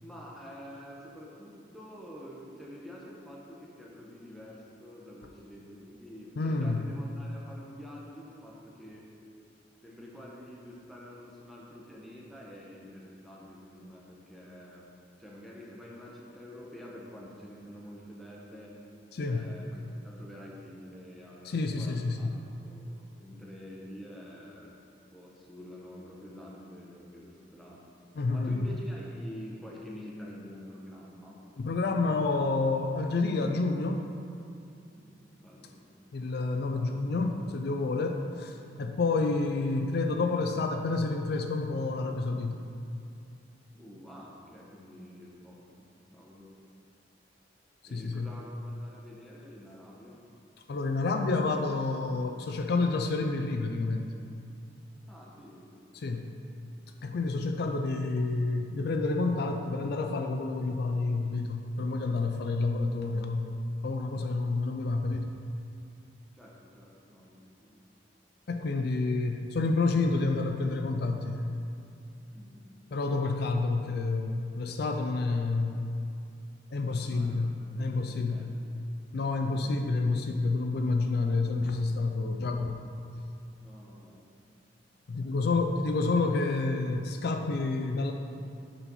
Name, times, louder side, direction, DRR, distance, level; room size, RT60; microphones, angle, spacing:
voice 1, 0.0-9.1 9.8-14.9 15.2-18.8 19.3-24.8 25.1-27.8 28.3-31.4 34.9-35.9 43.7-46.5 47.8-50.2 55.1-55.7 56.1-56.4 66.3-67.9 72.3-72.9 76.8-78.8 79.4-79.8 83.6-84.3 85.2-85.7, equal, ahead, -4 dB, 0.9 m, -48 dB
voice 2, 6.4-6.8 19.1-19.4 21.4-22.3 28.2-28.6 31.6-34.0 36.1-42.6 47.9-48.3 50.7-54.1 55.9-56.3 57.0-65.3 68.5-71.5 72.9-75.9 76.7-78.5 79.1-82.8 85.1-88.1, left 3 dB, 60° left, 4 dB, 0.4 m, -29 dB
6.9 x 4.2 x 5.4 m, 2.5 s
head